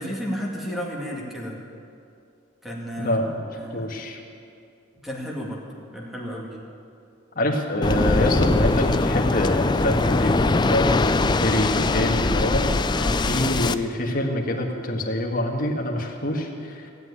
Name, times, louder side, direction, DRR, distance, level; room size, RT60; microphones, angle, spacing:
voice 1, 0.0-1.6 2.6-3.9 5.0-5.6 5.9-6.6 12.9-13.2, equal, ahead, -2 dB, 2.1 m, -32 dB
voice 2, 3.0-3.5 3.7-4.2 7.3-12.8 13.1-16.9, left 1 dB, 45° left, 1 dB, 1.8 m, -25 dB
Waves surf, 7.8-13.7, left 3 dB, 20° left, 0.4 m, -22 dB
16.0 x 8.1 x 9.8 m, 2.5 s
head